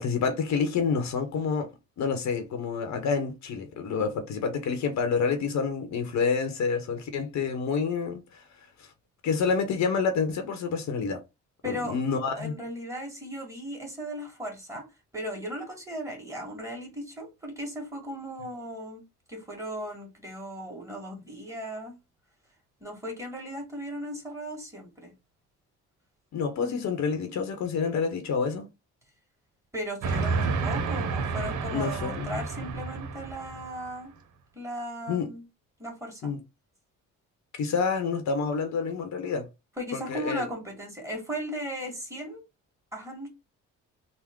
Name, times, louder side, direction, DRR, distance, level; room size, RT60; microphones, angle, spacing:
voice 1, 0.0-1.7 2.0-8.9 9.2-11.2 11.6-12.5 26.3-28.7 31.7-32.4 35.1-35.3 36.2-36.4 37.6-39.5 39.9-40.5, left 5 dB, 70° left, 0.9 m, -28 dB
voice 2, 11.6-12.0 12.4-14.9 15.1-19.0 19.3-22.0 22.8-25.1 29.7-34.1 34.5-35.5 35.8-36.3 39.8-42.4 42.9-43.3, equal, 10° right, 1.8 m, -37 dB
Train, 30.0-33.9, right 4 dB, 75° right, 0.8 m, -30 dB
3.5 x 2.1 x 3.6 m
cardioid pair, 90°, 30 cm